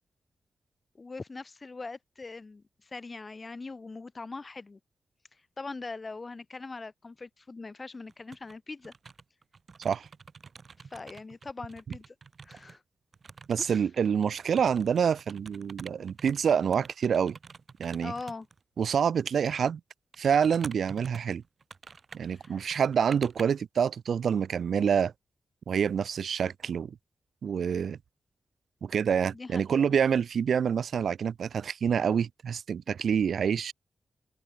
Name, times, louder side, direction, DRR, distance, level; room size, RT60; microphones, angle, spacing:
voice 1, 0.9-4.8 5.6-8.9 10.9-12.2 12.4-12.8 13.6-13.8 18.0-18.5 22.3-22.6 29.3-29.9, left 3 dB, 30° left, 4.0 m, -41 dB
sound 1, 8.1-8.6 8.8-12.8 13.1-18.6 19.4-19.6 20.1-23.4, right 5 dB, 45° right, 7.8 m, -48 dB
voice 2, 13.5-17.4 17.8-18.1 18.8-19.8 20.2-21.4 22.1-25.1 25.7-26.9 27.4-28.0 28.8-33.7, right 7 dB, 70° right, 0.7 m, -27 dB
wide cardioid pair, 120°, 0 cm